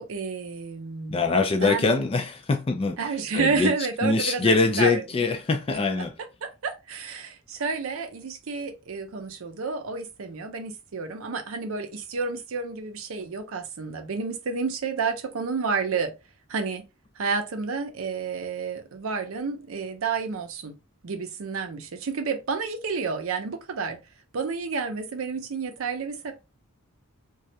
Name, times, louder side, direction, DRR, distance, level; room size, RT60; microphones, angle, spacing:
voice 1, 0.0-1.2 1.6-1.9 3.0-5.0 6.4-16.1 16.5-16.8 17.2-20.8 21.0-24.0 24.3-26.3, right 5 dB, 70° right, 0.5 m, -30 dB
voice 2, 1.1-3.7 4.0-6.1, left 3 dB, 25° left, 0.3 m, -24 dB
2.3 x 2.1 x 2.7 m
head